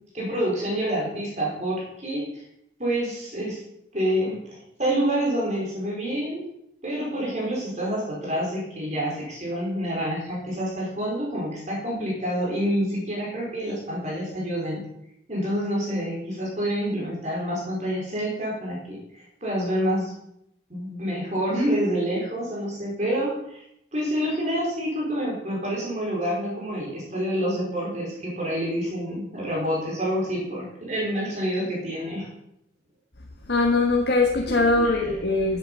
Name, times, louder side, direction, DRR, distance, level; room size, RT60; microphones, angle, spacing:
voice 1, 0.1-2.4 2.8-3.6 3.9-6.4 6.8-14.8 15.3-20.1 20.7-23.6 23.9-32.3 34.5-35.1, equal, 40° right, 4.6 m, -27 dB
voice 2, 33.5-35.6, left 3 dB, 70° left, 1.4 m, -21 dB
13.5 x 8.4 x 5.6 m
head